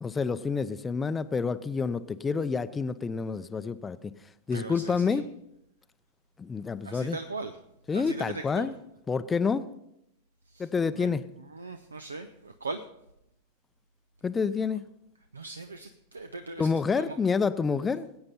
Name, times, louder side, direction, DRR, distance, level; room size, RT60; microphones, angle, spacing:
voice 1, 0.0-4.1 4.5-5.2 6.4-7.2 7.9-8.7 9.1-9.7 10.6-11.2 14.2-14.8 16.6-18.1, left 5 dB, 15° left, 14 dB, 0.6 m, -28 dB
voice 2, 4.5-5.2 6.8-7.6 7.9-8.7 10.5-12.8 15.3-17.2, right 3 dB, 75° right, 9 dB, 0.6 m, -40 dB
20.0 x 8.8 x 4.3 m, 0.82 s
figure-of-eight pair, 90°, 0 cm